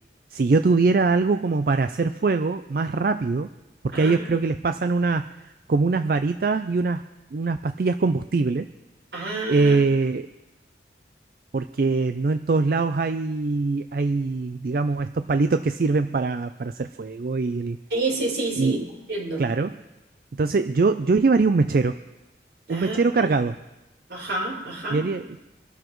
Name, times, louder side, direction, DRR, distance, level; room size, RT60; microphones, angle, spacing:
voice 1, 0.3-3.5 3.8-5.3 5.7-7.0 7.3-8.7 9.5-10.3 11.5-17.8 18.6-18.8 19.4-19.7 20.3-22.0 22.7-23.5 24.9-25.4, right 3 dB, 55° right, 10 dB, 0.4 m, -22 dB
voice 2, 3.9-4.2 9.1-9.8 17.9-18.8 19.1-19.4 22.7-23.0 24.1-25.0, right 2 dB, 85° right, -4 dB, 5.7 m, -28 dB
24.0 x 12.5 x 3.1 m, 1.0 s
head